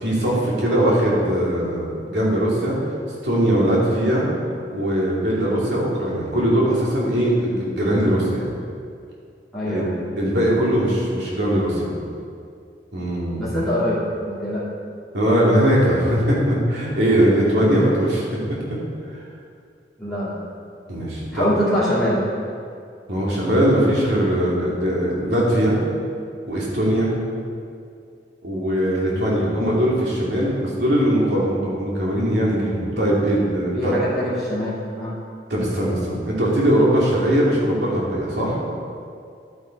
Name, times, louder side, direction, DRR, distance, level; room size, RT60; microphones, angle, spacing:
voice 1, 0.0-2.7 3.2-4.2 4.7-8.5 9.6-11.9 12.9-13.6 15.1-18.2 18.7-18.8 20.9-21.5 23.1-25.7 26.5-27.1 28.4-33.9 35.5-38.6, equal, 75° right, -5 dB, 2.9 m, -20 dB
voice 2, 9.5-10.0 13.4-14.6 20.0-20.5 21.3-22.3 33.7-35.2, equal, ahead, -12 dB, 2.4 m, -24 dB
11.0 x 8.9 x 4.7 m, 2.3 s
head